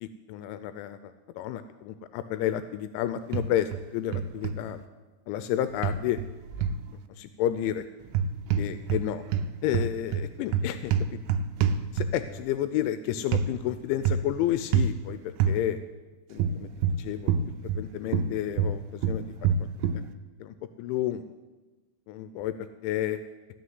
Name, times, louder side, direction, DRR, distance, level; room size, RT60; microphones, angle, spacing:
voice 1, 0.0-4.8 5.3-6.2 7.1-7.8 8.6-9.2 9.6-11.2 11.9-15.8 16.3-16.7 17.0-17.3 17.8-19.5 20.4-21.2 22.1-23.2, left 11 dB, 85° left, 11 dB, 2.9 m, -31 dB
sound 1, 3.3-3.8 4.1-4.6 5.8-6.8 8.1-9.1 9.3-12.3 13.3-13.5 14.0-14.3 14.7-15.0 15.4-15.6 16.4-17.9 18.1-20.0, right 6 dB, 80° right, 2.7 m, -26 dB
14.5 x 6.4 x 9.4 m, 1.2 s
omnidirectional pair, 5.4 m